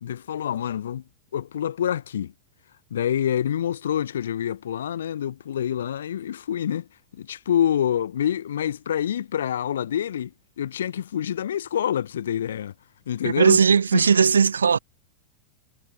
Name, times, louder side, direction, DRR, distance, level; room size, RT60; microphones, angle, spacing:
voice 1, 0.0-1.0 1.3-2.3 2.9-6.9 7.1-12.7 13.1-13.6 13.9-14.2, left 10 dB, 65° left, 0.5 m, -27 dB
voice 2, 13.2-14.8, right 6 dB, 70° right, 0.5 m, -18 dB
figure-of-eight pair, 90°, 0 cm